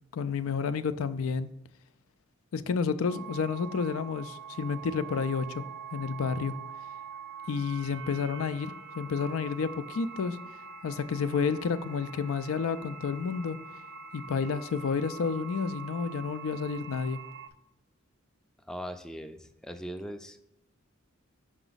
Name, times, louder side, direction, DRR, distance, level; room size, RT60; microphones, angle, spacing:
voice 1, 0.1-1.5 2.5-5.6 5.9-6.5 7.5-10.4 10.8-13.6 14.1-17.2, left 5 dB, 90° left, 0.4 m, -30 dB
sound 1, 3.0-17.5, right 6 dB, 60° right, 0.6 m, -44 dB
voice 2, 18.7-20.4, equal, 5° left, 0.3 m, -40 dB
5.8 x 5.0 x 3.9 m
head